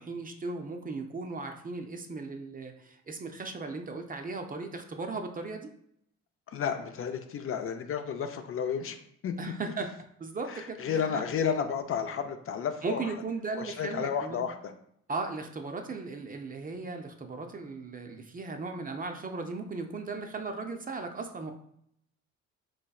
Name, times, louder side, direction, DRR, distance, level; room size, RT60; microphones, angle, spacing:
voice 1, 0.0-5.7 9.4-9.9 10.2-11.2 12.8-14.4 15.1-21.5, right 3 dB, 30° right, 5 dB, 0.4 m, -37 dB
voice 2, 6.5-9.0 9.2-9.3 10.5-13.1 13.6-14.7, left 7 dB, 45° left, 6 dB, 0.4 m, -32 dB
4.0 x 3.1 x 2.3 m, 0.70 s
cardioid pair, 90°, 30 cm